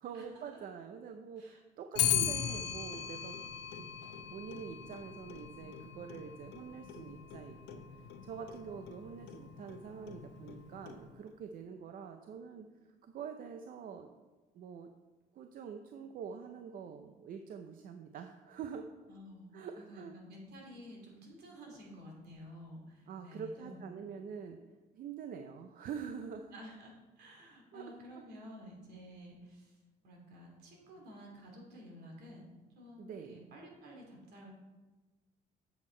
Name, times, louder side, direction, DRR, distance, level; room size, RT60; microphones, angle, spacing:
voice 1, 0.0-3.4 3.8-14.1 14.5-14.9 15.3-18.9 19.5-20.2 23.1-24.6 24.9-26.5 27.7-28.2 33.0-33.5, right 7 dB, 55° right, 6 dB, 0.6 m, -46 dB
Clock, 2.0-11.3, left 10 dB, 90° left, 0.7 m, -39 dB
voice 2, 19.1-23.9 26.5-29.8 30.0-32.4 32.7-34.5, equal, 70° right, 0 dB, 2.5 m, -52 dB
7.9 x 6.4 x 4.4 m, 1.2 s
cardioid pair, 110°, 17 cm